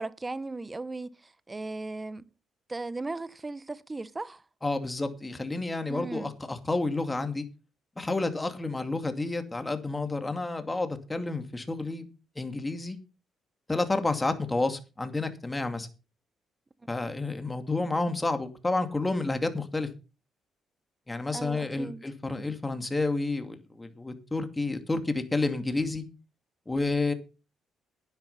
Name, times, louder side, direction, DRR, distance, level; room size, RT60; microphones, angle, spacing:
voice 1, 0.0-2.2 2.7-4.4 5.9-6.3 21.3-22.0, right 3 dB, 20° right, 1.0 m, -37 dB
voice 2, 4.6-7.4 8.0-12.0 12.4-13.0 13.7-15.9 16.9-19.9 21.1-26.0 26.7-27.1, left 2 dB, 15° left, 2.4 m, -30 dB
11.0 x 10.5 x 5.3 m
cardioid pair, 90°, 0 cm